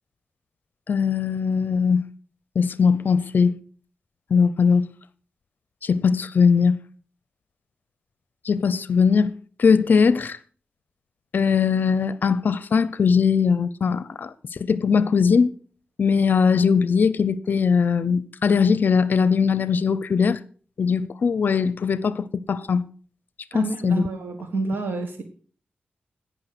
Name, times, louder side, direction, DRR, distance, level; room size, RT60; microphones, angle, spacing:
voice 1, 0.9-2.1 2.6-3.6 4.3-4.9 5.8-6.8 8.4-9.3 9.6-10.4 11.3-15.5 16.0-20.4 20.8-22.9 23.5-24.1, left 6 dB, 60° left, 0.6 m, -20 dB
voice 2, 23.5-25.2, right 3 dB, 70° right, 1.5 m, -28 dB
17.0 x 6.1 x 5.9 m
wide cardioid pair, 135°, 4 cm